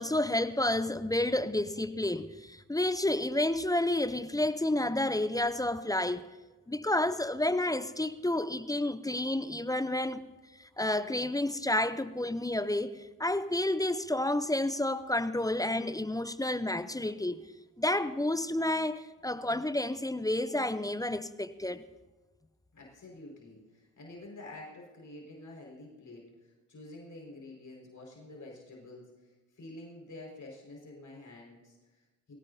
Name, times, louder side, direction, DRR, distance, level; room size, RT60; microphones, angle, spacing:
voice 1, 0.0-6.3 6.7-10.2 10.6-17.4 17.8-21.8, left 1 dB, 10° left, 0.6 m, -30 dB
voice 2, 22.7-32.3, left 2 dB, 40° left, 5.3 m, -49 dB
22.5 x 17.5 x 2.8 m
hypercardioid pair, 45°, 46 cm